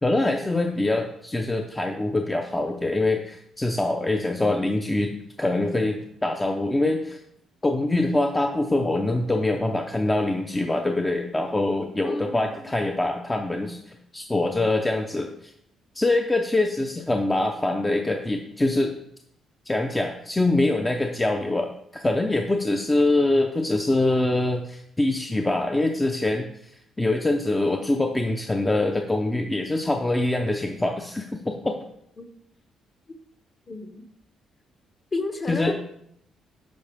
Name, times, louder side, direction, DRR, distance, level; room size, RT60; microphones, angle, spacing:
voice 1, 0.0-5.1 5.4-7.2 7.6-15.5 15.9-18.9 19.7-26.4 27.0-31.8 35.5-35.7, left 2 dB, 15° left, 3 dB, 0.6 m, -24 dB
voice 2, 12.0-12.7 32.2-32.3 33.7-34.0 35.1-35.7, left 3 dB, 40° left, 5 dB, 1.3 m, -32 dB
10.5 x 4.4 x 3.5 m, 0.71 s
cardioid pair, 90°, 0 cm